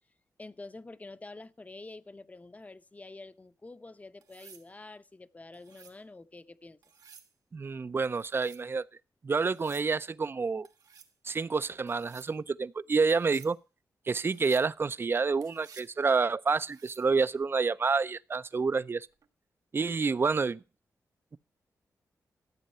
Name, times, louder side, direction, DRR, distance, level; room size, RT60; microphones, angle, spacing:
voice 1, 0.4-6.8, left 2 dB, 25° left, 0.7 m, -47 dB
sound 1, 4.2-4.7 5.5-6.0 6.8-7.3 8.2-8.6 9.4-9.9 10.6-11.1 11.9-12.3 13.1-13.5 14.2-14.7 15.4-15.9 16.6-17.1 19.0-19.3, right 7 dB, 85° right, 1.4 m, -55 dB
voice 2, 7.5-8.9 9.2-10.7 11.2-13.6 14.1-19.1 19.7-20.6, right 4 dB, 35° right, 0.5 m, -28 dB
13.5 x 8.8 x 5.4 m
cardioid pair, 85°, 6 cm